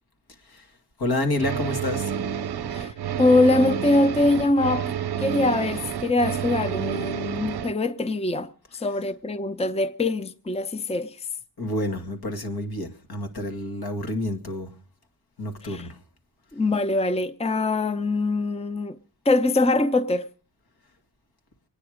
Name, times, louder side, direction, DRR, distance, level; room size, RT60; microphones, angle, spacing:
voice 1, 1.0-2.1 11.6-14.7 15.4-16.0, left 1 dB, 70° left, 2.2 m, -29 dB
sound 1, 1.4-7.7, right 8 dB, 75° right, 0.8 m, -29 dB
voice 2, 2.7-11.2 15.6-15.9 16.5-19.0 19.3-20.2, left 2 dB, 15° left, 0.7 m, -23 dB
25.0 x 9.8 x 5.0 m
wide cardioid pair, 100°, 39 cm